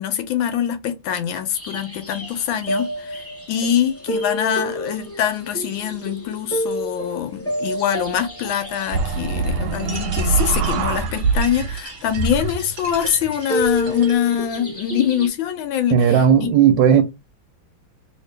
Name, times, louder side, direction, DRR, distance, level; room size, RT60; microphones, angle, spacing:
voice 1, 0.0-15.9 16.4-16.5, left 9 dB, 75° left, 1.3 m, -23 dB
sound 1, 1.5-15.3, equal, 10° left, 0.7 m, -31 dB
sound 2, 8.9-11.8 12.1-14.1, right 4 dB, 90° right, 1.5 m, -24 dB
sound 3, 9.7-14.3, right 4 dB, 50° right, 1.0 m, -38 dB
voice 2, 15.9-17.0, right 8 dB, 75° right, 1.1 m, -14 dB
3.0 x 2.8 x 3.2 m
omnidirectional pair, 2.3 m